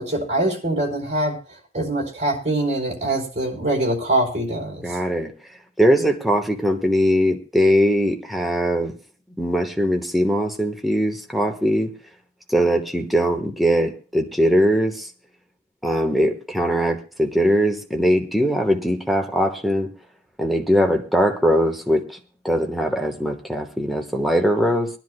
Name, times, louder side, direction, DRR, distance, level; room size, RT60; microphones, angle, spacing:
voice 1, 0.0-5.0, right 1 dB, 40° right, -2 dB, 4.0 m, -24 dB
voice 2, 4.8-5.3 5.8-8.9 9.4-11.9 12.5-15.1 15.8-19.9 20.4-22.2 22.4-24.9, equal, ahead, 2 dB, 1.2 m, -20 dB
24.0 x 10.5 x 2.2 m, 0.36 s
head